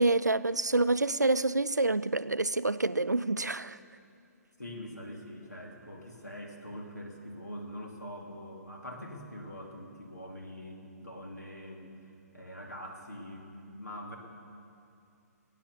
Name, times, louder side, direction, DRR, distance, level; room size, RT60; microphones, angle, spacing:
voice 1, 0.0-3.8, right 2 dB, 90° right, 0.4 m, -27 dB
voice 2, 4.6-11.9 12.3-14.2, equal, 85° left, 2.7 m, -44 dB
19.5 x 9.3 x 6.8 m
figure-of-eight pair, 130°, 9 cm